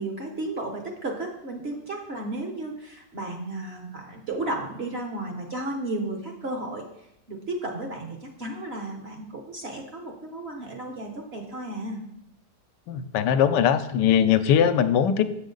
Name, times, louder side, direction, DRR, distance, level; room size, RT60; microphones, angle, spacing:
voice 1, 0.0-6.8 7.3-12.0, right 2 dB, 45° right, 2 dB, 0.9 m, -33 dB
voice 2, 12.9-15.2, left 8 dB, 85° left, 11 dB, 1.2 m, -20 dB
7.2 x 6.5 x 3.8 m, 0.80 s
omnidirectional pair, 1.8 m